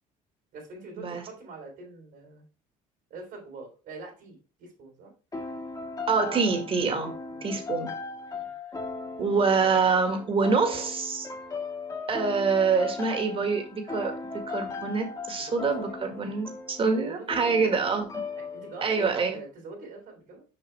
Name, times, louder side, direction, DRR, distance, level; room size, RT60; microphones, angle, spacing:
voice 1, 0.5-2.4 3.1-5.1 7.3-7.5 8.3-8.5 15.3-16.0 17.1-17.8 18.4-20.4, right 2 dB, 75° right, 0 dB, 3.8 m, -45 dB
sound 1, 5.3-19.0, left 4 dB, 25° left, 1.7 m, -38 dB
voice 2, 6.1-7.1 7.4-7.9 9.2-11.3 12.1-14.1 14.5-18.2 18.8-19.4, right 4 dB, 35° right, 5 dB, 2.0 m, -26 dB
6.8 x 5.5 x 3.3 m, 0.35 s
cardioid pair, 95°, 16 cm